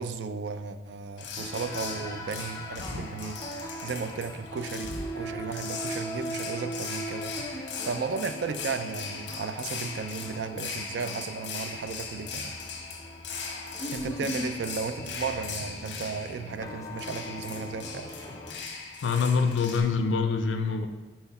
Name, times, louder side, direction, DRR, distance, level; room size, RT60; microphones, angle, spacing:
voice 1, 0.0-12.6 13.9-18.1, right 5 dB, 65° right, 10 dB, 0.4 m, -35 dB
sound 1, 1.2-19.8, left 5 dB, 70° left, 0.9 m, -39 dB
sound 2, 1.4-18.6, equal, 20° left, 0.5 m, -40 dB
voice 2, 19.0-20.9, left 5 dB, 85° left, 6 dB, 0.4 m, -25 dB
5.7 x 4.4 x 4.1 m, 1.2 s
head